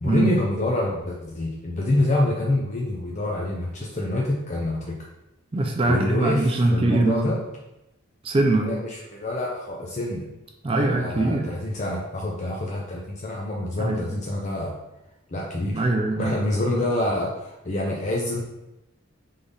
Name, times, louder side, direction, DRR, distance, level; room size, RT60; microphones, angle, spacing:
voice 1, 0.0-5.0 5.8-7.4 8.6-10.3 10.7-14.7 15.3-15.9 16.2-18.4, left 1 dB, 35° left, -2 dB, 0.5 m, -26 dB
voice 2, 5.5-7.4 8.2-8.8 10.6-11.5 13.8-14.0 15.6-16.4, right 2 dB, 25° right, 2 dB, 0.4 m, -22 dB
3.6 x 3.4 x 3.9 m, 0.92 s
head